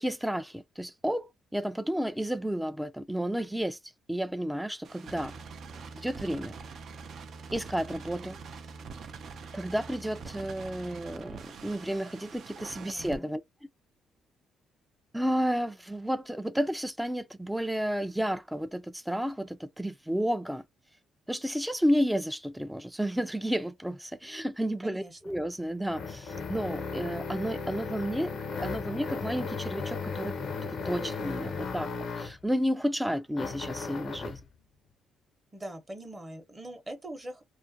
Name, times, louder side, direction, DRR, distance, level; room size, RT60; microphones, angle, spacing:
voice 1, 0.0-3.8 4.1-5.4 5.9-6.5 7.5-8.4 9.5-13.4 15.1-20.6 21.3-30.4 30.6-34.4, equal, 5° right, 0.3 m, -31 dB
sound 1, 4.8-13.2, right 5 dB, 65° right, 0.5 m, -44 dB
voice 2, 12.7-13.4 24.8-25.2 35.5-37.4, right 1 dB, 25° right, 0.8 m, -42 dB
sound 2, 25.2-32.5 33.3-34.5, left 4 dB, 60° left, 0.5 m, -36 dB
2.4 x 2.1 x 2.6 m
cardioid pair, 90°, 0 cm